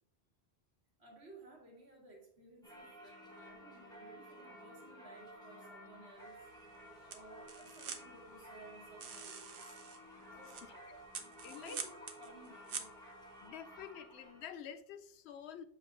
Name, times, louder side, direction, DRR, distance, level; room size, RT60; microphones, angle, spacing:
voice 1, 1.0-6.4 7.1-9.8 10.2-10.9 11.4-11.9 12.2-12.9, right 2 dB, 80° right, -1 dB, 2.2 m, -57 dB
Singing / Church bell, 2.6-14.5, equal, 5° left, 1.3 m, -54 dB
sound 1, 6.2-13.5, right 6 dB, 65° right, 0.9 m, -49 dB
voice 2, 10.9-11.8 13.4-15.6, left 8 dB, 80° left, 11 dB, 0.8 m, -49 dB
7.2 x 5.3 x 2.5 m, 0.63 s
omnidirectional pair, 1.1 m